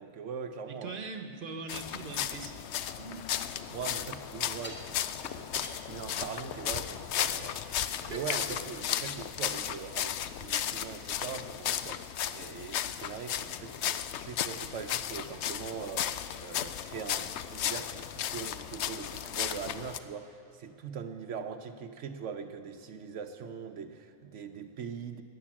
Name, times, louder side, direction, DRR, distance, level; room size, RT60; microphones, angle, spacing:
voice 1, 0.0-1.0 3.7-25.2, right 6 dB, 90° right, 6 dB, 1.1 m, -42 dB
voice 2, 0.7-3.3 8.0-8.4, right 3 dB, 50° right, 7 dB, 1.3 m, -42 dB
sound 1, 1.7-20.0, left 10 dB, 75° left, 0.9 m, -35 dB
sound 2, 2.6-3.8 4.6-7.0 7.4-7.5, equal, 10° left, 1.7 m, -48 dB
13.5 x 10.0 x 8.5 m, 2.8 s
omnidirectional pair, 1.2 m